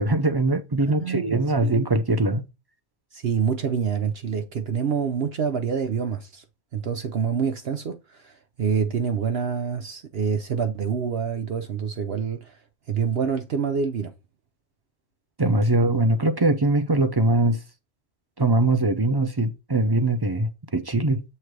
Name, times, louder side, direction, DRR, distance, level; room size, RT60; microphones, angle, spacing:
voice 1, 0.0-2.5 15.4-17.6 18.4-21.2, right 2 dB, 30° right, 0.4 m, -22 dB
voice 2, 0.9-1.7 3.1-6.4 6.7-12.6 12.9-14.1, right 6 dB, 60° right, 0.9 m, -27 dB
8.0 x 3.2 x 4.6 m
omnidirectional pair, 1.2 m